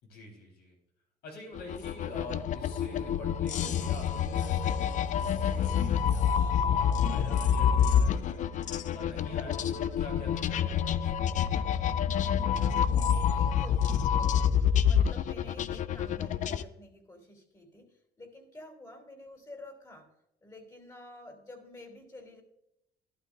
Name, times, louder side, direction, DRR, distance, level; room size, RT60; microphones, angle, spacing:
voice 1, 0.0-0.7 1.2-8.5 8.9-11.3, left 2 dB, 75° left, 0 dB, 4.3 m, -46 dB
sound 1, 1.5-16.6, left 8 dB, 50° left, 0.4 m, -27 dB
voice 2, 12.6-22.4, left 2 dB, 20° left, 4 dB, 3.1 m, -50 dB
12.0 x 11.5 x 2.6 m, 0.81 s
cardioid pair, 110°, 17 cm